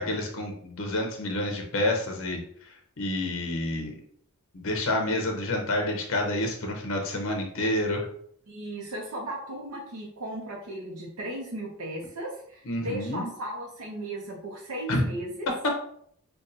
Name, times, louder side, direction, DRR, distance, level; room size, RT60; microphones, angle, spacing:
voice 1, 0.0-2.4 3.0-4.0 4.5-8.1 12.7-13.3 14.9-15.0 15.6-15.7, left 1 dB, 60° left, 2 dB, 0.6 m, -28 dB
voice 2, 8.5-15.5, right 1 dB, 85° right, -2 dB, 0.7 m, -36 dB
5.2 x 2.3 x 2.6 m, 0.66 s
head